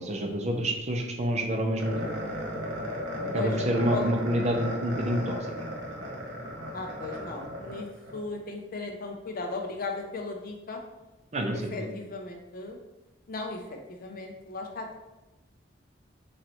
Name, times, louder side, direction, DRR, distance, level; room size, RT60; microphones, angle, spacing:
voice 1, 0.0-2.1 3.3-5.4 11.3-12.0, equal, 35° right, 2 dB, 0.6 m, -28 dB
sound 1, 1.8-8.2, equal, 85° right, 1.0 m, -35 dB
voice 2, 3.3-3.6 3.9-4.1 6.7-10.8 11.5-12.8 13.3-15.0, left 3 dB, 50° left, 2 dB, 0.5 m, -36 dB
3.9 x 3.1 x 2.9 m, 1.0 s
head